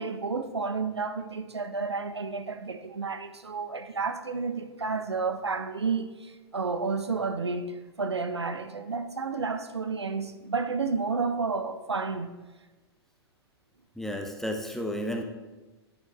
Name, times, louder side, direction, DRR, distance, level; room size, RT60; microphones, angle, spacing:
voice 1, 0.0-12.3, right 4 dB, 80° right, 0.6 m, -31 dB
voice 2, 14.0-15.2, equal, 5° left, 0.8 m, -32 dB
10.5 x 6.4 x 3.1 m
figure-of-eight pair, 100°, 14 cm